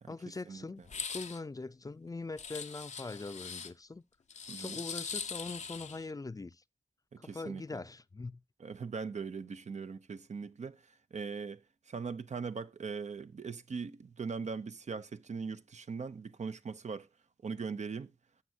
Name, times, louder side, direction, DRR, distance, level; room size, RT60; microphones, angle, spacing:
voice 1, 0.1-4.0 4.6-6.6 7.2-8.4, left 3 dB, 30° left, 0.4 m, -42 dB
sound 1, 0.8-1.4 2.4-3.7 4.3-6.0, left 5 dB, 90° left, 0.6 m, -41 dB
voice 2, 4.5-4.8 7.1-7.8 8.6-17.1 17.4-18.1, right 5 dB, 80° right, 0.6 m, -40 dB
12.5 x 7.3 x 2.7 m
wide cardioid pair, 65°, 12 cm